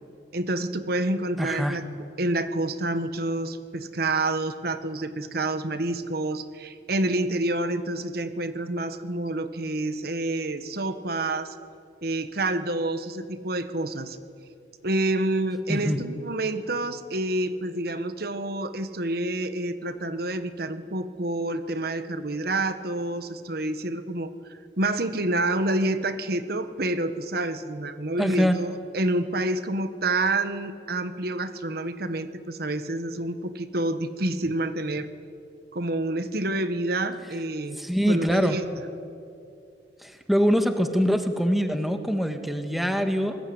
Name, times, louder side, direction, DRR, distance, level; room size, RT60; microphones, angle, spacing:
voice 1, 0.3-1.8 2.2-11.6 12.0-14.2 14.8-35.1 35.7-37.8 38.1-38.6, right 2 dB, 55° right, 11 dB, 1.4 m, -28 dB
voice 2, 1.4-1.8 15.7-16.0 28.2-28.6 37.8-38.6 40.0-43.4, equal, ahead, 6 dB, 1.7 m, -24 dB
26.5 x 21.0 x 9.6 m, 2.6 s
head